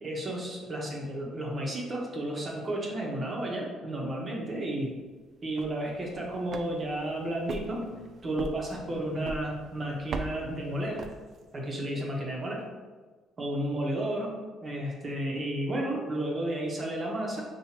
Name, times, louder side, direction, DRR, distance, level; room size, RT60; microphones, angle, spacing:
voice 1, 0.0-4.9 5.4-7.9 8.2-11.0 11.5-12.6 13.4-14.4 14.6-17.4, right 1 dB, 35° right, -2 dB, 1.2 m, -32 dB
sound 1, 5.4-11.7, right 3 dB, 55° right, 0.3 m, -42 dB
5.8 x 2.7 x 2.9 m, 1.3 s
cardioid pair, 95°, 0 cm